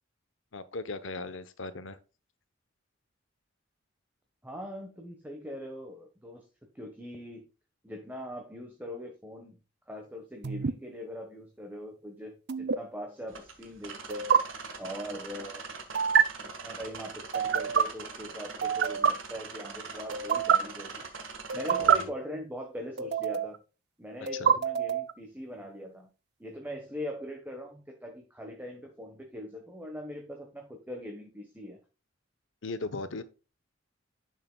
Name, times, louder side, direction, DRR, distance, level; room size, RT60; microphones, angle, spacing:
voice 1, 0.5-2.0 21.8-22.1 24.2-24.5 32.6-33.2, left 3 dB, 70° left, 0.9 m, -38 dB
voice 2, 4.4-6.5 6.7-7.5 7.8-9.6 9.9-14.3 14.8-15.6 16.4-21.0 21.5-23.6 24.0-26.1 26.4-31.8, equal, 10° right, 1.3 m, -41 dB
sound 1, 10.4-10.7 12.5-12.8 14.1-14.4 15.9-16.2 17.3-17.8 18.6-19.1 20.1-20.6 21.5-22.0 23.0-23.6 24.3-25.1, right 7 dB, 55° right, 0.6 m, -25 dB
sound 2, 13.3-22.1, right 4 dB, 75° right, 1.8 m, -42 dB
10.5 x 6.5 x 2.3 m
head